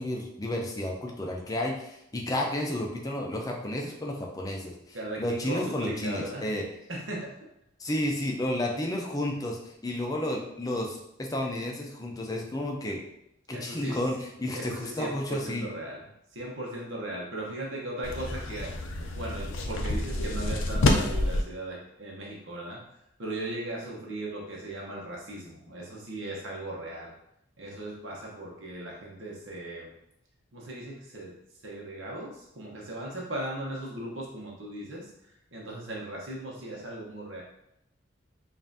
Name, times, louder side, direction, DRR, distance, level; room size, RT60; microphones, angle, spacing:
voice 1, 0.0-6.6 7.8-13.0 13.5-15.7, left 1 dB, 20° left, 0 dB, 0.5 m, -32 dB
voice 2, 4.9-6.5 6.9-7.4 13.5-14.0 14.5-18.7 19.2-22.8 23.2-27.1 27.6-29.9 30.5-31.3 31.6-37.4, right 1 dB, 75° right, -3 dB, 0.9 m, -38 dB
sound 1, 18.0-21.4, left 2 dB, 80° left, 0.5 m, -28 dB
5.3 x 2.5 x 2.7 m, 0.80 s
head